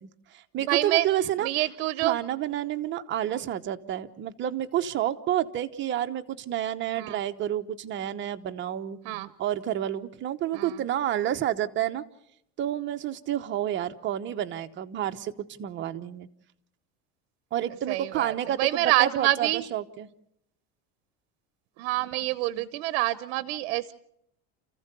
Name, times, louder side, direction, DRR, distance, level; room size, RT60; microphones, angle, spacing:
voice 1, 0.0-1.5 2.0-9.0 9.4-12.0 12.6-15.3 15.6-16.3 17.5-20.1 22.5-22.7, right 11 dB, 35° right, 6 dB, 1.0 m, -29 dB
voice 2, 0.6-1.1 1.4-2.2 7.0-7.2 9.0-9.3 10.5-10.8 17.9-19.6 21.8-23.9, right 17 dB, 80° right, 16 dB, 0.8 m, -27 dB
28.5 x 15.0 x 6.8 m, 0.76 s
cardioid pair, 140°, 31 cm